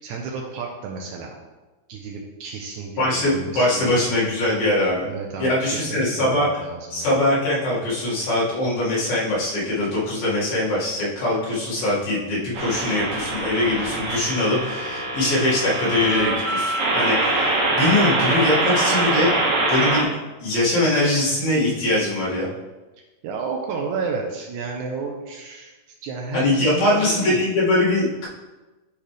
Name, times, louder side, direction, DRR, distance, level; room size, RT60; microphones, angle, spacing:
voice 1, 0.0-1.4 1.9-4.0 5.0-7.2 23.2-25.7 26.0-27.4, right 4 dB, 85° right, 0 dB, 1.7 m, -32 dB
voice 2, 3.0-5.1 5.4-6.5 6.9-19.3 19.7-20.1 20.4-22.5 26.3-28.3, left 1 dB, 75° left, -8 dB, 3.9 m, -22 dB
sound 1, 12.5-20.0, right 2 dB, 60° right, 1.6 m, -23 dB
10.5 x 4.3 x 3.3 m, 1.2 s
omnidirectional pair, 4.2 m